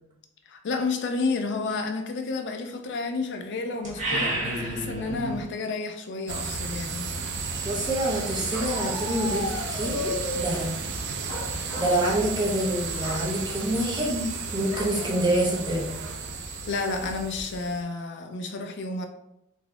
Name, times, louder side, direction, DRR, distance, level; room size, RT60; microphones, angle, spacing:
voice 1, 0.5-7.1 16.5-19.1, left 3 dB, 60° left, 0.4 m, -31 dB
sound 1, 3.8-5.4, right 1 dB, 40° right, 1.1 m, -29 dB
sound 2, 6.3-17.8, right 4 dB, 55° right, 0.4 m, -33 dB
voice 2, 7.6-10.8 11.5-15.9, right 1 dB, 20° right, 0.8 m, -27 dB
Bark, 8.5-10.6 11.3-12.0 12.3-12.6 12.9-13.3 14.7-15.0 15.5-15.6 15.9-16.4, left 2 dB, 75° left, 1.4 m, -34 dB
4.0 x 2.7 x 2.3 m
head